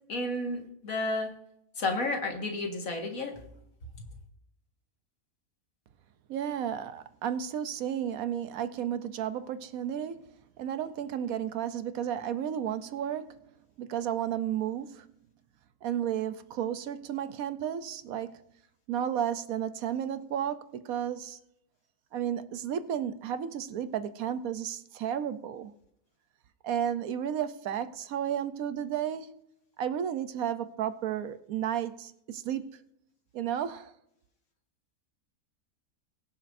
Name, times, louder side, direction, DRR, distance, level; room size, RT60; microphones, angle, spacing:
voice 1, 0.1-1.3 1.8-3.3, left 2 dB, 65° left, 2.1 m, -31 dB
voice 2, 6.3-10.3 10.6-13.4 13.8-15.1 15.8-18.4 18.9-21.4 22.1-25.7 26.6-29.3 29.8-32.8 33.3-33.9, right 9 dB, 75° right, 1.1 m, -33 dB
22.0 x 7.4 x 2.6 m
omnidirectional pair, 1.5 m